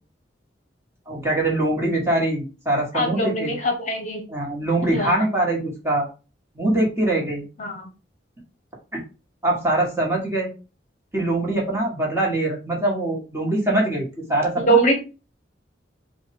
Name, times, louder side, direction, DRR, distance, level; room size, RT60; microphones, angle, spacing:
voice 1, 1.1-3.6 4.3-6.1 6.5-7.4 8.9-9.0 9.4-10.5 11.1-14.9, right 1 dB, 15° right, -3 dB, 1.7 m, -23 dB
voice 2, 2.9-4.2 4.9-5.3 7.6-7.9 14.6-14.9, right 2 dB, 40° left, 3 dB, 1.0 m, -22 dB
4.6 x 2.6 x 4.3 m, 0.32 s
head